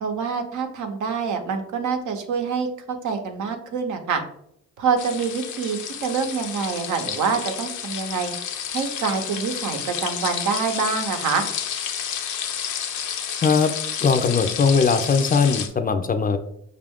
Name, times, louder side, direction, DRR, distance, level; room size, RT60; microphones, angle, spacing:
voice 1, 0.0-4.2 4.8-8.3 8.7-11.5, right 5 dB, 75° right, 5 dB, 0.7 m, -26 dB
sound 1, 5.0-15.7, left 8 dB, 75° left, 0.6 m, -30 dB
voice 2, 13.4-13.7 14.0-16.4, left 5 dB, 30° left, 8 dB, 0.4 m, -20 dB
5.2 x 2.5 x 3.5 m, 0.73 s
cardioid pair, 90°, 30 cm